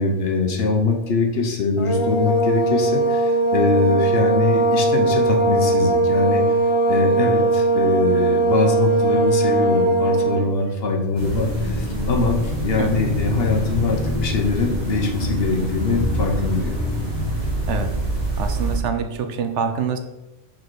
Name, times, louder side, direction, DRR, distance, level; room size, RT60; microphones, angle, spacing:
voice 1, 0.0-6.4 6.9-16.7, left 4 dB, 55° left, 2 dB, 1.0 m, -22 dB
sound 1, 1.8-10.5, right 2 dB, 40° left, 0.5 m, -19 dB
sound 2, 11.1-18.8, equal, 45° right, 1.7 m, -25 dB
voice 2, 18.4-20.0, right 6 dB, 70° right, 7 dB, 0.9 m, -25 dB
5.0 x 4.3 x 4.6 m, 0.98 s
omnidirectional pair, 1.3 m